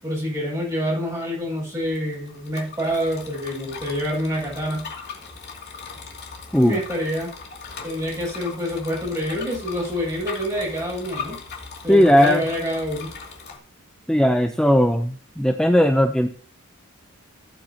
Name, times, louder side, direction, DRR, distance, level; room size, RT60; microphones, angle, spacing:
voice 1, 0.0-4.9 6.5-7.3 7.8-11.4 11.8-13.1, equal, 15° right, -7 dB, 7.1 m, -27 dB
Bicycle, 1.8-13.6, left 5 dB, 50° left, 2.7 m, -39 dB
voice 2, 11.9-12.4 14.1-16.3, equal, 5° left, 5 dB, 0.7 m, -17 dB
16.0 x 9.1 x 2.9 m, 0.43 s
head